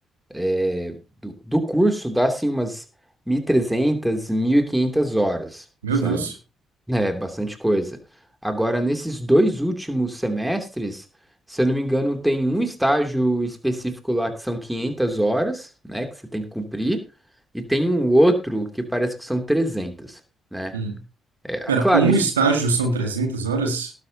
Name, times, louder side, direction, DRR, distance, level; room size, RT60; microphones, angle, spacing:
voice 1, 0.3-1.0 1.2-2.8 3.3-5.6 6.0-6.3 6.9-8.0 8.4-11.0 11.5-17.0 17.5-20.2 20.5-20.7 21.4-22.1, right 1 dB, 5° right, 6 dB, 2.9 m, -23 dB
voice 2, 5.8-6.4 20.7-20.9 21.7-23.9, right 4 dB, 80° right, 5 dB, 1.8 m, -22 dB
19.0 x 9.4 x 2.9 m, 0.30 s
figure-of-eight pair, 40°, 0 cm